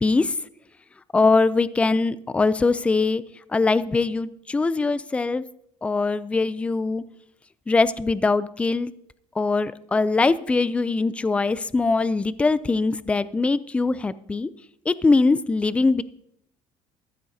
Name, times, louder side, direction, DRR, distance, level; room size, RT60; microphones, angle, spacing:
voice 1, 0.0-0.3 1.1-3.2 3.5-5.4 5.8-7.0 7.7-8.9 9.4-14.5 14.9-16.0, left 3 dB, 10° left, 16 dB, 0.3 m, -22 dB
15.5 x 14.5 x 2.7 m, 0.71 s
cardioid pair, 160°, 12 cm